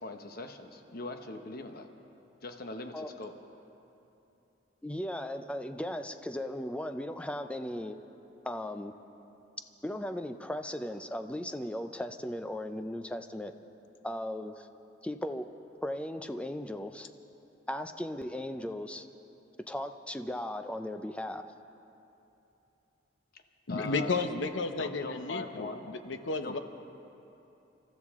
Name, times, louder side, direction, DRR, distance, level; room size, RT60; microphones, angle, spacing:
voice 1, 0.0-1.9 2.4-3.3 23.7-24.2 24.8-25.9 26.4-26.6, left 3 dB, 55° left, 6 dB, 1.0 m, -41 dB
voice 2, 4.8-8.0 8.4-8.9 9.8-13.5 14.0-14.7 15.0-15.5 15.8-17.1 17.7-19.1 19.7-21.4, left 1 dB, 5° left, 8 dB, 0.5 m, -37 dB
voice 3, 23.7-26.6, left 3 dB, 90° left, 8 dB, 0.9 m, -33 dB
27.5 x 13.5 x 3.7 m, 2.9 s
head